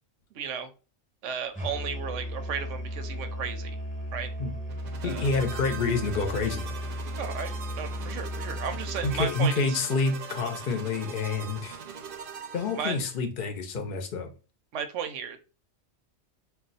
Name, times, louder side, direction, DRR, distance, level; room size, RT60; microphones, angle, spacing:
voice 1, 0.3-0.7 1.2-3.8 4.1-4.3 5.0-5.3 7.2-9.8 12.8-13.0 13.8-13.9 14.7-15.4, right 6 dB, 85° right, 8 dB, 0.9 m, -34 dB
Musical instrument, 1.5-9.3, equal, 5° left, 1.0 m, -35 dB
sound 1, 4.7-13.2, right 6 dB, 60° right, 0.6 m, -41 dB
voice 2, 5.0-6.7 9.0-11.8 12.5-14.3, left 4 dB, 50° left, 5 dB, 0.7 m, -28 dB
2.4 x 2.3 x 3.9 m, 0.33 s
omnidirectional pair, 1.2 m